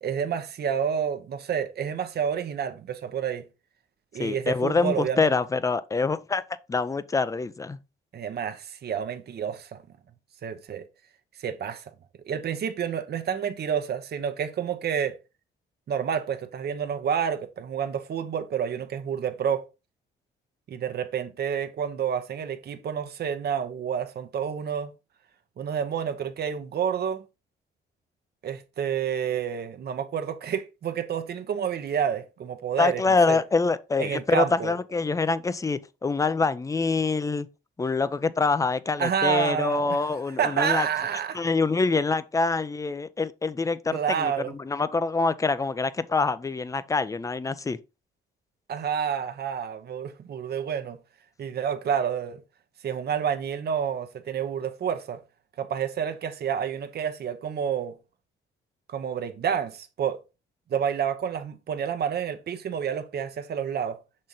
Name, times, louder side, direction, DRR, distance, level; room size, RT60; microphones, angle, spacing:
voice 1, 0.0-3.4 4.1-5.3 8.1-9.8 10.4-10.8 11.4-11.8 12.3-15.2 15.9-19.6 20.7-24.9 25.6-27.2 28.4-33.0 33.3-33.4 34.0-34.7 39.0-40.0 40.4-41.4 43.9-44.5 48.7-51.0 51.4-52.4 52.8-55.2 55.6-58.0 58.9-60.2 60.7-64.0, right 8 dB, 55° right, 0.9 m, -29 dB
voice 2, 4.2-6.4 6.7-7.8 32.8-37.5 37.8-40.9 41.3-44.3 44.6-47.8, left 4 dB, 15° left, 0.5 m, -25 dB
6.2 x 4.3 x 3.8 m
cardioid pair, 90°, 20 cm